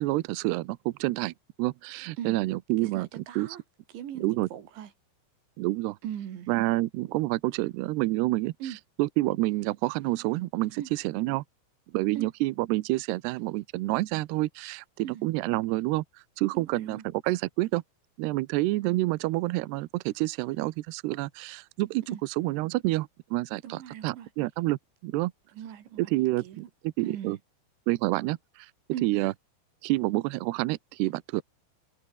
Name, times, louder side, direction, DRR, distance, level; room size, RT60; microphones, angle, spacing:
voice 1, 0.0-3.5 4.2-4.5 5.6-6.0 6.5-8.5 9.0-11.4 11.9-16.0 16.4-17.8 18.2-22.0 22.4-25.3 26.0-27.4 27.9-28.7 29.0-29.3 29.8-31.4, right 19 dB, 85° right, 2.3 m, -28 dB
voice 2, 2.8-3.6 3.9-4.9 6.0-6.5 8.6-8.8 10.7-10.9 12.2-12.3 15.0-15.2 16.5-17.1 22.1-22.2 23.6-24.3 25.5-26.1 26.4-26.6 27.0-27.4 28.9-29.1, right 10 dB, 65° right, 4.8 m, -39 dB
omnidirectional pair, 5.8 m